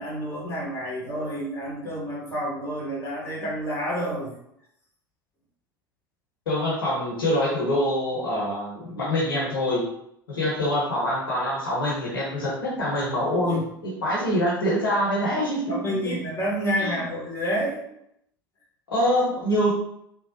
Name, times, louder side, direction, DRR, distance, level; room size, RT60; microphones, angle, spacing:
voice 1, 0.0-4.3 13.4-13.6 15.7-17.9, equal, 25° left, -4 dB, 1.3 m, -29 dB
voice 2, 6.5-9.9 10.3-15.8 16.0-16.1 16.8-17.0 18.9-19.8, equal, 75° left, -5 dB, 0.9 m, -25 dB
3.2 x 2.0 x 2.7 m, 0.75 s
figure-of-eight pair, 75°, 12 cm